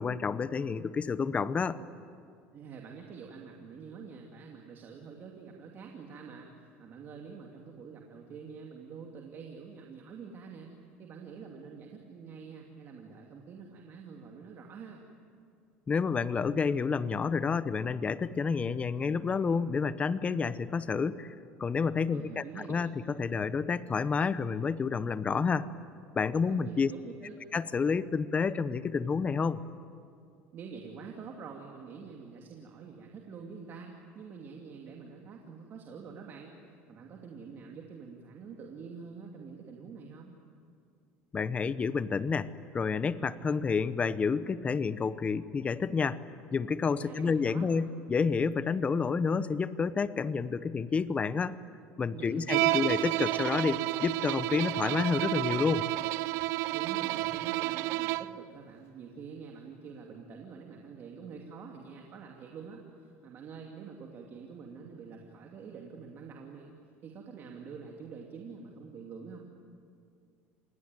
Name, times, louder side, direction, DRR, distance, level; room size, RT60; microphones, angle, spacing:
voice 1, 0.0-1.8 15.9-21.3 21.6-22.4 22.7-22.9 23.2-25.7 26.1-26.9 27.5-29.6 41.3-46.2 46.5-51.6 52.0-55.9, left 5 dB, 25° left, 15 dB, 0.9 m, -29 dB
voice 2, 2.5-15.0 22.1-22.7 26.5-27.4 30.5-36.6 36.9-40.3 47.0-47.7 52.1-52.9 56.7-66.7 67.0-69.5, right 5 dB, 45° right, 1 dB, 2.7 m, -46 dB
Bowed string instrument, 52.5-58.4, right 18 dB, 70° right, 0.6 m, -30 dB
28.0 x 21.0 x 9.2 m, 2.4 s
supercardioid pair, 115°, 5 cm